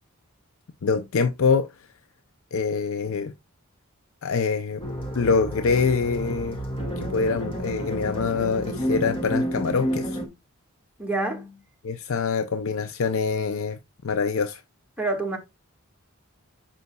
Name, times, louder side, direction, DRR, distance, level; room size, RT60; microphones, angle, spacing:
voice 1, 0.8-1.7 2.5-3.3 4.2-4.8 5.1-6.6 7.0-10.2 11.8-13.8 14.0-14.6, left 5 dB, 70° left, 0.5 m, -25 dB
sound 1, 4.8-10.3, equal, 25° left, 1.7 m, -30 dB
voice 2, 11.0-11.6 15.0-15.4, right 2 dB, 5° right, 1.6 m, -27 dB
8.0 x 5.7 x 2.2 m
head